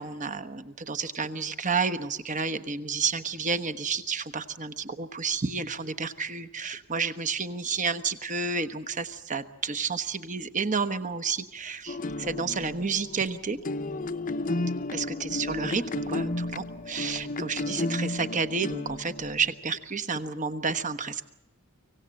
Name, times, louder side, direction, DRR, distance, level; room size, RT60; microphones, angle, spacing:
voice 1, 0.0-13.6 14.9-21.2, right 5 dB, 35° right, 11 dB, 1.1 m, -30 dB
sound 1, 11.9-19.6, left 2 dB, 40° left, 0.8 m, -33 dB
25.0 x 17.0 x 7.6 m, 0.95 s
head